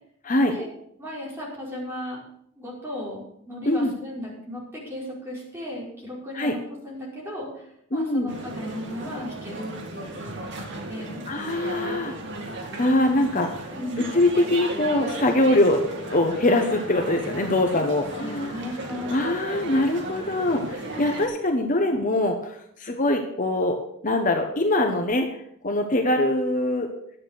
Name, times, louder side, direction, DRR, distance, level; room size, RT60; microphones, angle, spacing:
voice 1, 1.0-2.2 2.6-11.2 13.7-14.0 17.7-19.1, left 1 dB, 10° right, -5 dB, 5.1 m, -36 dB
voice 2, 7.9-8.3 11.3-12.1 12.8-13.5 14.1-15.8 16.1-18.5 19.1-23.8 24.0-26.9, left 1 dB, 40° left, 4 dB, 1.1 m, -23 dB
sound 1, 8.3-21.3, right 2 dB, 60° right, 2.2 m, -35 dB
11.0 x 8.3 x 6.6 m, 0.72 s
head